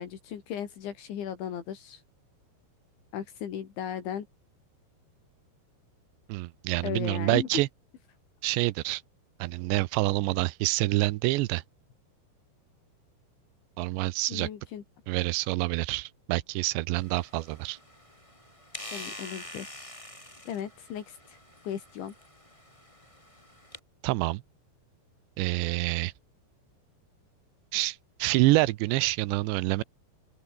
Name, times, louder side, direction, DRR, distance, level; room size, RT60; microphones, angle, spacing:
voice 1, 0.0-2.0 3.1-4.3 6.8-7.5 14.3-14.8 18.9-20.0 20.5-21.4 21.7-22.1, left 9 dB, 80° left, 5.4 m, -36 dB
voice 2, 6.3-7.7 8.4-9.0 9.4-11.6 13.8-14.5 15.1-17.8 24.0-24.4 25.4-26.1 27.7-29.8, right 20 dB, 80° right, 2.9 m, -27 dB
sound 1, 17.0-23.8, left 1 dB, 5° left, 5.3 m, -46 dB
open air
omnidirectional pair, 5.3 m